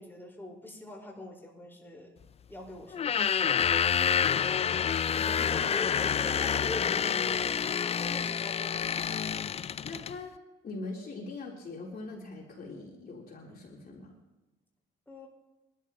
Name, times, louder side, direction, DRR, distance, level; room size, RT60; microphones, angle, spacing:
voice 1, 0.0-2.2 2.5-3.4 5.1-7.5 8.0-9.3 15.1-15.3, left 1 dB, 10° left, -1 dB, 4.8 m, -43 dB
sound 1, 2.9-10.2, left 7 dB, 30° left, 0.3 m, -28 dB
voice 2, 5.6-6.1 9.8-10.3 10.6-14.1, left 3 dB, 50° left, -2 dB, 3.6 m, -42 dB
24.0 x 13.0 x 3.0 m, 1.1 s
cardioid pair, 90°, 20 cm